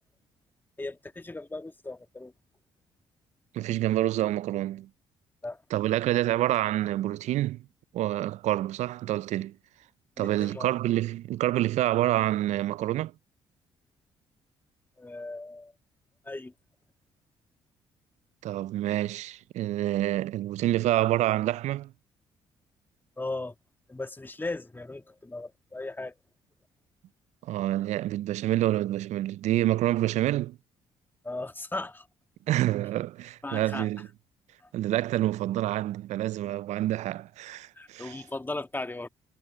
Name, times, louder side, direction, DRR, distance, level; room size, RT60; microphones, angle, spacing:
voice 1, 0.8-2.3 5.4-5.6 10.2-10.7 15.0-15.7 16.2-16.5 23.2-23.5 23.9-26.1 31.2-32.1 33.4-33.9 37.8-39.1, left 2 dB, 15° left, 1.6 m, -37 dB
voice 2, 3.5-4.9 5.7-7.6 7.9-9.5 10.2-13.1 18.4-21.9 27.4-30.6 32.5-34.1 34.7-38.2, right 14 dB, 70° right, 0.4 m, -27 dB
supercardioid pair, 60°, 12 cm